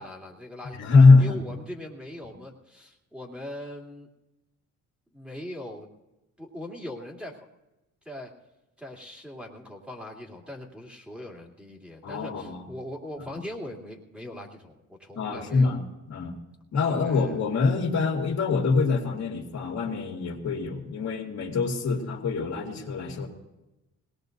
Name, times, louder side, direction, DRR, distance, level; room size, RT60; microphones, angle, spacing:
voice 1, 0.0-0.9 1.2-4.1 5.1-5.9 6.4-7.4 8.0-8.3 8.8-15.8 16.9-17.4, left 1 dB, 5° right, -2 dB, 2.9 m, -40 dB
voice 2, 0.8-1.4 12.0-12.7 13.2-13.4 15.1-15.8 16.1-16.3 16.7-23.3, left 4 dB, 65° left, 0 dB, 2.6 m, -23 dB
21.5 x 19.0 x 2.7 m, 0.97 s
cardioid pair, 90°, 30 cm